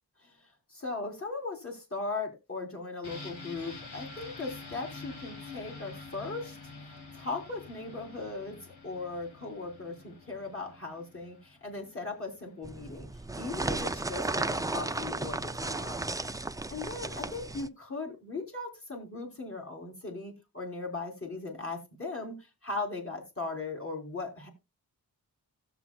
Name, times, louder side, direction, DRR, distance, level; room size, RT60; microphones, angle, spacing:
voice 1, 0.2-8.6 8.8-13.1 13.4-16.1 16.7-24.5, left 3 dB, 35° left, 1 dB, 3.4 m, -38 dB
sound 1, 3.0-12.7 13.0-13.1, left 3 dB, 80° left, 3.1 m, -47 dB
sound 2, 12.6-17.7, right 2 dB, 10° right, 0.4 m, -34 dB
16.5 x 7.2 x 2.3 m, 0.25 s
wide cardioid pair, 80°, 38 cm